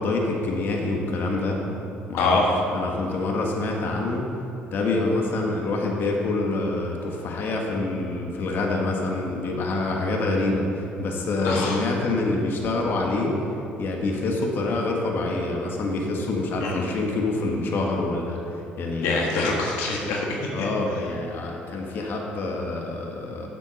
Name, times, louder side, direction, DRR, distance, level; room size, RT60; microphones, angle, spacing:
voice 1, 0.0-1.6 2.1-2.4 2.7-4.3 4.7-13.3 13.8-19.2 20.5-23.5, left 2 dB, 55° left, 0 dB, 1.6 m, -26 dB
voice 2, 2.2-2.5 11.4-11.8 16.6-16.9 19.0-20.3, left 3 dB, 85° left, -2 dB, 1.4 m, -24 dB
7.7 x 7.4 x 6.4 m, 2.7 s
supercardioid pair, 85°, 4 cm